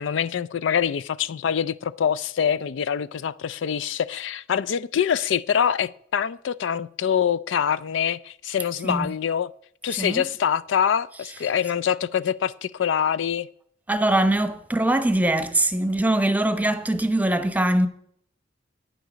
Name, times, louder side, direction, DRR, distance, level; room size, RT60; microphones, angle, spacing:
voice 1, 0.0-9.5 9.8-13.5, left 8 dB, 70° left, 0.4 m, -25 dB
voice 2, 9.9-10.2 13.9-17.9, right 1 dB, 10° right, 0.8 m, -22 dB
9.6 x 9.1 x 5.0 m
head